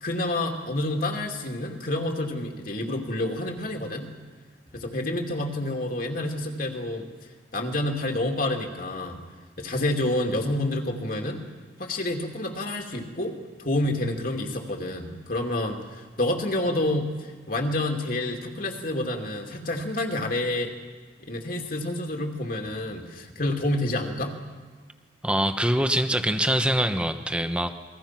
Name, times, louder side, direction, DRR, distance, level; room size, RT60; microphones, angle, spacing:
voice 1, 0.0-4.1 4.7-7.1 7.5-9.2 9.6-11.4 11.8-20.7 21.2-24.4, left 1 dB, 50° left, 2 dB, 2.7 m, -28 dB
voice 2, 25.2-27.7, right 1 dB, 5° right, 7 dB, 1.1 m, -24 dB
28.5 x 22.0 x 6.0 m, 1.4 s
head